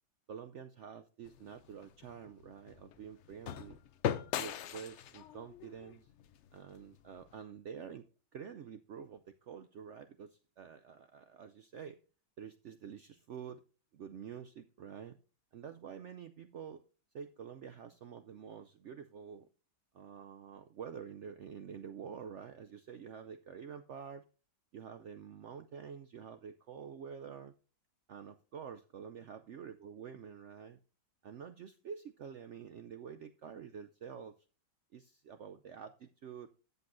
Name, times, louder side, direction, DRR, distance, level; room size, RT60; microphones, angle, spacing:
voice 1, 0.3-3.8 4.4-6.1 6.5-8.1 8.3-12.0 12.4-13.6 13.9-15.2 15.5-16.8 17.1-19.5 19.9-24.2 24.7-27.5 28.1-30.8 31.2-34.3 34.9-36.5, right 7 dB, 85° right, 9 dB, 0.6 m, -48 dB
sound 1, 1.2-7.4, left 10 dB, 85° left, 0.6 m, -41 dB
13.5 x 8.1 x 2.6 m, 0.36 s
omnidirectional pair, 1.9 m